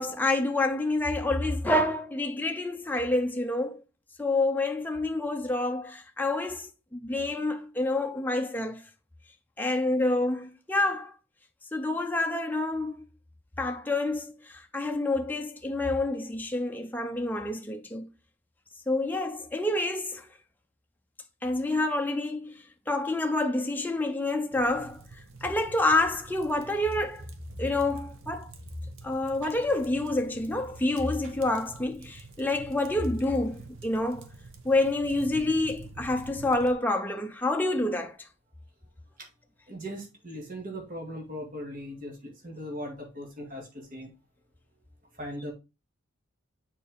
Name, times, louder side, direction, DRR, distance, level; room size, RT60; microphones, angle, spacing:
voice 1, 0.0-3.8 4.2-8.8 9.6-11.1 11.7-13.0 13.6-18.1 18.9-20.3 21.4-22.6 22.9-25.0 25.4-27.3 27.6-28.5 29.0-34.3 34.6-38.2, left 2 dB, 10° left, 0.6 m, -28 dB
sound 1, 24.5-36.7, right 3 dB, 80° right, 1.1 m, -48 dB
voice 2, 39.7-44.1 45.1-45.5, equal, 40° right, 2.1 m, -39 dB
6.9 x 4.6 x 3.5 m
head